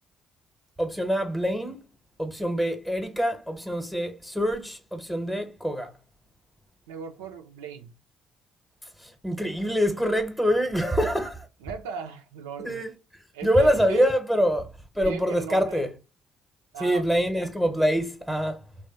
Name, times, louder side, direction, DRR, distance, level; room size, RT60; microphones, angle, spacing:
voice 1, 0.8-1.8 2.2-5.9 9.0-11.5 12.6-12.9 13.4-15.9 16.8-18.6, equal, ahead, 0.8 m, -25 dB
voice 2, 6.9-7.9 11.6-12.8 13.3-14.1 15.0-15.8 16.7-17.3, right 7 dB, 75° right, 0.3 m, -37 dB
3.3 x 2.1 x 4.0 m
figure-of-eight pair, 45°, 0 cm